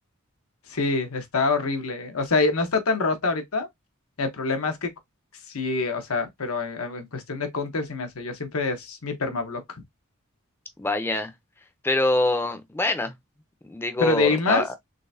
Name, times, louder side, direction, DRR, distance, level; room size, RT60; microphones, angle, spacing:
voice 1, 0.7-3.7 4.2-4.9 5.5-9.8 14.0-14.6, left 3 dB, 80° left, 1.0 m, -26 dB
voice 2, 10.8-11.3 11.8-13.1 13.6-14.7, left 2 dB, 10° left, 0.5 m, -24 dB
3.8 x 3.3 x 2.6 m
head